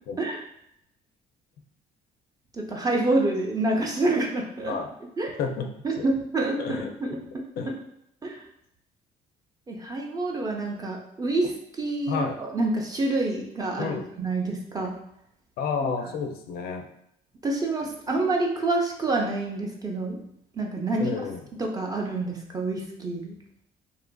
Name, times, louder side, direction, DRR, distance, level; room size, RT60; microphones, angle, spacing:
voice 1, 2.5-4.7 5.2-5.4 5.8-7.2 8.2-8.4 9.7-11.5 11.8-14.9 17.4-20.2 20.5-21.1 21.6-23.3, right 2 dB, 20° right, 0 dB, 0.5 m, -27 dB
voice 2, 5.4-5.7 6.0-6.1 6.6-6.9 7.6-7.7 12.1-12.4 13.8-14.1 15.6-16.9 21.0-21.4, left 5 dB, 65° left, 5 dB, 0.4 m, -30 dB
2.8 x 2.4 x 2.2 m, 0.75 s
cardioid pair, 110°, 17 cm